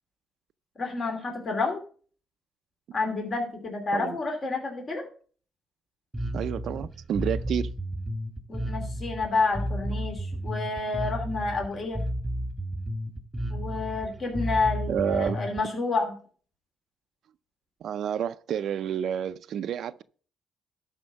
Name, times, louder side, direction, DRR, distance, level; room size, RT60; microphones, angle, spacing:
voice 1, 0.8-1.8 2.9-5.0 8.5-12.0 13.5-16.1, left 3 dB, 40° left, 2.8 m, -29 dB
Bass guitar, 6.1-15.6, equal, 10° right, 1.4 m, -32 dB
voice 2, 6.3-7.7 14.9-15.4 17.8-20.0, right 9 dB, 70° right, 0.4 m, -30 dB
12.5 x 4.4 x 7.0 m
cardioid pair, 90°, 0 cm